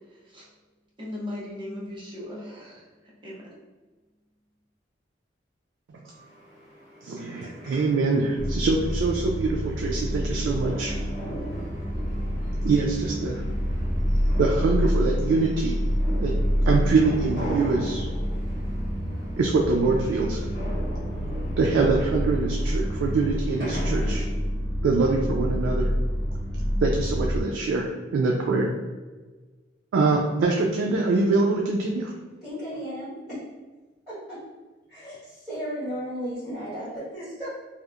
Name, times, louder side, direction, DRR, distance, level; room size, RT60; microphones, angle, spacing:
voice 1, 0.1-0.5 1.0-3.4, left 1 dB, 25° right, -5 dB, 0.6 m, -38 dB
sound 1, 6.1-24.3, equal, 55° right, 1.2 m, -40 dB
voice 2, 7.0-11.0 12.6-13.4 14.4-15.7 16.2-16.3 16.6-18.0 19.4-20.5 21.6-24.3 24.8-25.9 26.8-28.7 29.9-32.1, right 3 dB, 85° right, -1 dB, 0.3 m, -24 dB
sound 2, 8.4-27.4, equal, 30° left, 0.8 m, -27 dB
voice 3, 32.4-33.4 34.1-34.4 34.9-35.2 35.4-37.5, equal, ahead, -12 dB, 1.1 m, -34 dB
2.7 x 2.0 x 2.3 m, 1.3 s
head